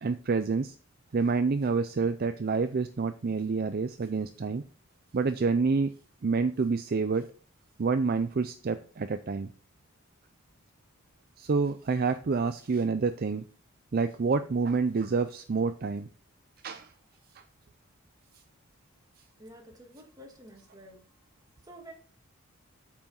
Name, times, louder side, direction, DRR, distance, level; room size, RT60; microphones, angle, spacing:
voice 1, 0.0-0.7 1.1-4.6 5.1-5.9 6.2-7.3 7.8-9.5 11.4-13.4 13.9-16.1 16.6-16.9, right 4 dB, 45° right, 10 dB, 0.4 m, -28 dB
voice 2, 19.4-21.0 21.7-21.9, right 1 dB, 20° right, 1 dB, 2.1 m, -49 dB
8.6 x 6.0 x 4.3 m, 0.40 s
head